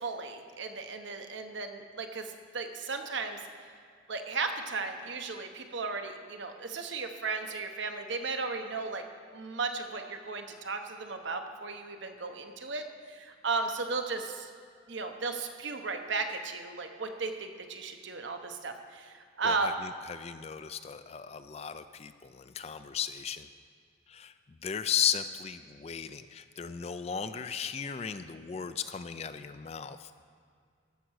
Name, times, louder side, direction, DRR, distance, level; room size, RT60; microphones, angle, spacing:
voice 1, 0.0-3.4 4.1-9.0 9.3-14.5 14.9-19.7, right 4 dB, 65° right, 6 dB, 0.9 m, -35 dB
voice 2, 19.4-23.5 24.1-24.3 24.6-30.1, left 8 dB, 30° left, 11 dB, 0.3 m, -35 dB
14.0 x 5.9 x 6.4 m, 2.1 s
head